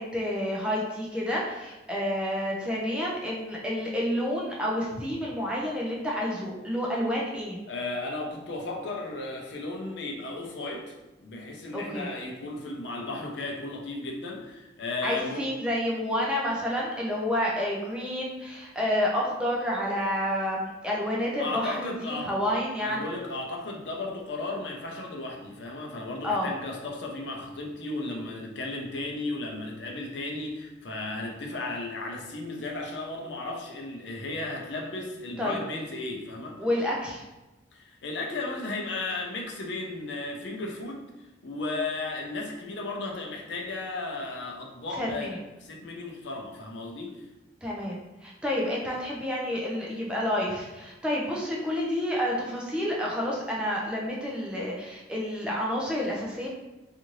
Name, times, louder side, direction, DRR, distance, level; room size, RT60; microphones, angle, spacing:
voice 1, 0.0-7.6 11.7-12.1 15.0-23.0 26.2-26.5 35.4-35.6 36.6-37.2 44.9-45.4 47.6-56.5, left 1 dB, 5° right, -4 dB, 0.4 m, -29 dB
voice 2, 7.7-15.5 21.4-22.3 22.8-36.6 37.7-41.0 41.4-45.3 45.6-47.3, left 2 dB, 70° left, 0 dB, 0.5 m, -35 dB
2.7 x 2.5 x 3.0 m, 1.1 s
head